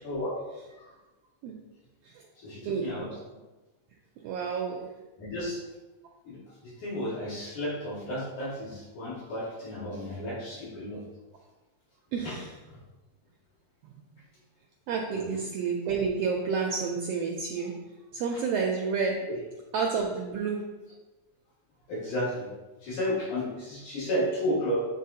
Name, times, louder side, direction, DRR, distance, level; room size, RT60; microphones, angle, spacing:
voice 1, 0.0-0.4 0.8-0.9 2.4-3.1 5.2-5.6 6.2-11.0 12.2-12.4 12.7-12.8 15.1-15.2 18.3-18.4 19.3-19.4 21.9-22.5 22.8-24.9, equal, 75° left, -9 dB, 3.7 m, -32 dB
voice 2, 2.6-3.2 4.2-4.8 12.1-12.5 13.9-14.0 14.9-17.8 18.1-19.2 19.7-20.6, right 5 dB, 85° right, 0 dB, 1.4 m, -30 dB
9.2 x 3.7 x 2.8 m, 1.1 s
omnidirectional pair, 3.5 m